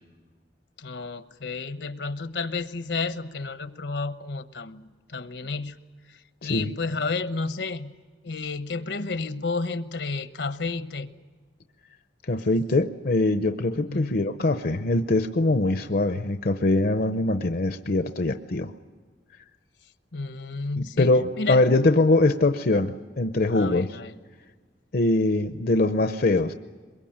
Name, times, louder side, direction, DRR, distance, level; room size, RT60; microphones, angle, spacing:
voice 1, 0.8-5.8 6.1-7.9 8.2-11.1 13.7-14.2 20.1-21.1 21.4-21.6 23.5-24.1, left 3 dB, 75° left, 12 dB, 1.0 m, -31 dB
voice 2, 6.4-6.7 12.2-18.7 20.8-23.9 24.9-26.5, left 2 dB, 55° left, 9 dB, 0.7 m, -23 dB
23.0 x 22.0 x 8.8 m, 1.5 s
head